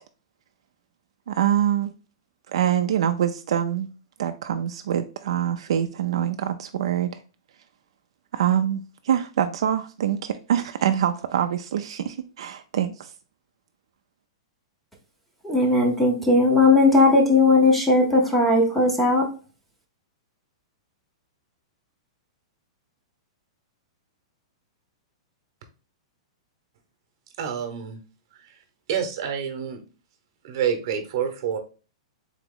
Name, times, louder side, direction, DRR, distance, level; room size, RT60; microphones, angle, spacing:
voice 1, 1.3-1.9 2.5-3.9 4.2-7.2 8.3-13.1, right 10 dB, 65° right, 0.4 m, -25 dB
voice 2, 15.4-19.3, left 2 dB, 5° left, 0.6 m, -18 dB
voice 3, 27.4-28.0 28.9-29.8 30.4-31.6, right 7 dB, 40° right, 0.9 m, -27 dB
4.0 x 2.9 x 3.7 m
supercardioid pair, 180°, 3 cm